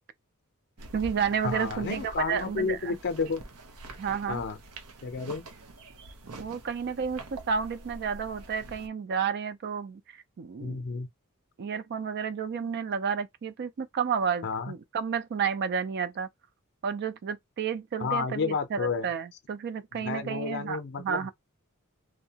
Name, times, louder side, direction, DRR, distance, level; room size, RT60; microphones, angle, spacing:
sound 1, 0.8-8.9, right 2 dB, 90° right, 0.7 m, -46 dB
voice 1, 0.9-3.0 4.0-4.4 6.4-10.8 11.6-16.3 16.8-21.3, right 6 dB, 50° right, 0.4 m, -31 dB
voice 2, 1.4-3.4 4.3-4.6 5.0-5.4 10.6-11.1 14.4-14.7 18.0-19.1 19.9-21.3, left 4 dB, 50° left, 0.5 m, -31 dB
2.7 x 2.1 x 2.8 m
head